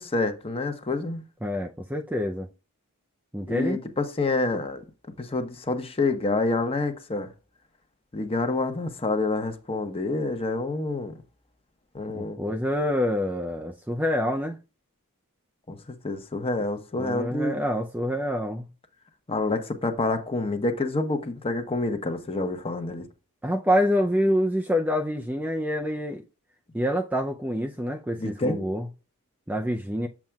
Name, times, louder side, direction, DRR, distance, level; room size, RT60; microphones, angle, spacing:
voice 1, 0.0-1.2 3.5-4.8 5.2-7.3 8.1-11.1 11.9-12.4 15.7-15.8 16.0-17.6 19.3-23.1 28.2-28.7, left 2 dB, 25° left, 0.9 m, -27 dB
voice 2, 1.4-2.5 3.3-3.8 12.1-14.6 16.9-18.7 23.4-26.2 26.7-28.9 29.5-30.1, equal, 5° right, 0.4 m, -26 dB
7.4 x 7.2 x 2.3 m
head